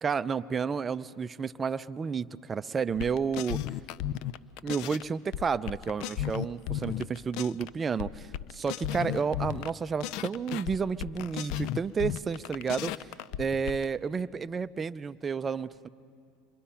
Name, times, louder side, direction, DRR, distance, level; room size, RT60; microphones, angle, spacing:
voice 1, 0.0-3.6 4.6-12.9 13.4-15.9, right 6 dB, 25° right, 14 dB, 0.5 m, -31 dB
sound 1, 2.9-5.0 5.3-7.7 8.0-9.7 10.0-13.8, left 12 dB, 60° left, 0.5 m, -35 dB
28.0 x 23.0 x 5.7 m, 2.4 s
supercardioid pair, 100°, 0 cm